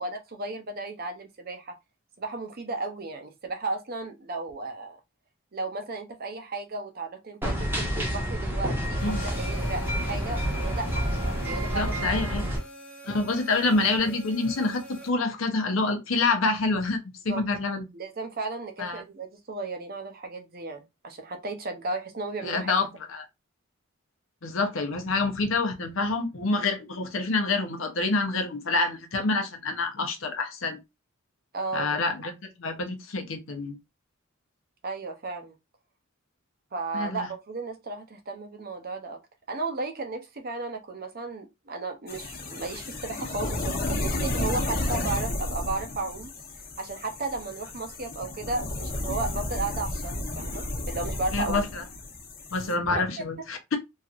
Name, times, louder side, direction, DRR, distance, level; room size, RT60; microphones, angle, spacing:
voice 1, 0.0-1.7 2.2-5.0 5.5-12.3 17.3-17.4 17.9-22.7 31.5-32.0 34.8-35.6 36.7-39.2 39.5-46.3 46.8-51.6 52.9-53.2, right 3 dB, 45° right, 0.6 m, -34 dB
sound 1, 7.4-12.6, equal, 10° right, 0.9 m, -29 dB
sound 2, 9.0-15.1, right 1 dB, 5° left, 0.5 m, -43 dB
voice 2, 11.6-12.4 13.1-17.9 18.8-19.0 22.4-23.2 24.4-30.8 31.7-33.8 36.9-37.3 51.3-51.8 52.5-53.8, left 3 dB, 75° left, 0.7 m, -27 dB
sound 3, 42.1-52.7, left 1 dB, 45° left, 0.9 m, -32 dB
3.1 x 2.8 x 2.4 m
head